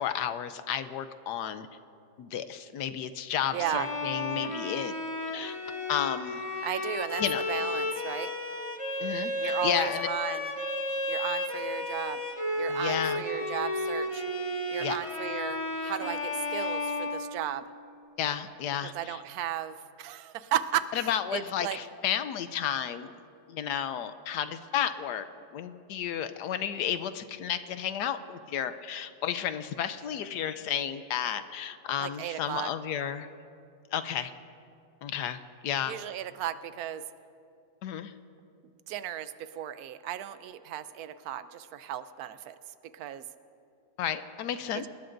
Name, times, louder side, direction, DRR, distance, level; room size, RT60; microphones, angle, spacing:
voice 1, 0.0-1.7 2.2-4.9 5.3-5.6 5.9-6.4 7.2-7.4 9.0-10.1 12.7-13.2 14.8-15.0 18.2-19.2 20.9-23.1 23.5-25.3 25.5-33.3 33.9-34.3 35.0-35.4 35.6-36.0 37.8-38.1 44.0-44.8, left 9 dB, 75° left, 11 dB, 1.2 m, -32 dB
Bowed string instrument, 3.5-17.8, left 2 dB, 20° left, 1.0 m, -33 dB
voice 2, 3.5-3.9 6.6-7.2 7.5-8.3 9.4-10.5 11.1-12.2 12.6-14.2 14.7-17.7 18.9-21.8 32.0-32.7 35.9-37.0 38.9-42.5 42.9-43.2 44.7-44.9, right 11 dB, 70° right, 12 dB, 1.1 m, -35 dB
26.5 x 20.5 x 2.6 m, 2.5 s
omnidirectional pair, 1.8 m